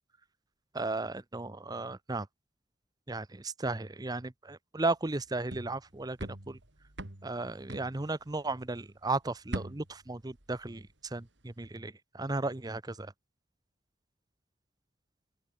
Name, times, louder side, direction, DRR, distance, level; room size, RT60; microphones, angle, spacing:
voice 1, 0.7-2.3 3.1-6.6 7.2-13.1, right 2 dB, 20° right, 0.7 m, -35 dB
sound 1, 5.1-8.8 9.1-11.1 11.4-11.7, right 1 dB, 65° right, 3.2 m, -44 dB
open air
head